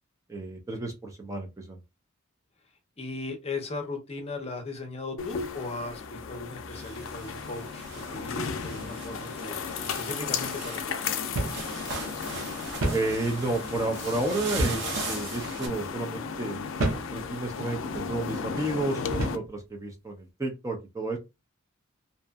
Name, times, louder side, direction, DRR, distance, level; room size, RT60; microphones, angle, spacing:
voice 1, 0.3-1.8 12.9-16.6 17.1-21.2, right 2 dB, 15° right, 0.5 m, -31 dB
voice 2, 3.0-11.2, left 3 dB, 30° left, 0.7 m, -37 dB
sound 1, 5.2-19.4, left 6 dB, 70° left, 0.4 m, -35 dB
sound 2, 6.7-15.7, right 3 dB, 60° right, 0.8 m, -39 dB
sound 3, 11.4-11.7 12.0-12.1 12.8-13.1 14.6-14.9 15.6-15.8 16.8-17.1 17.9-18.1 19.1-19.5, right 1 dB, 90° right, 0.7 m, -29 dB
2.7 x 2.4 x 2.3 m
head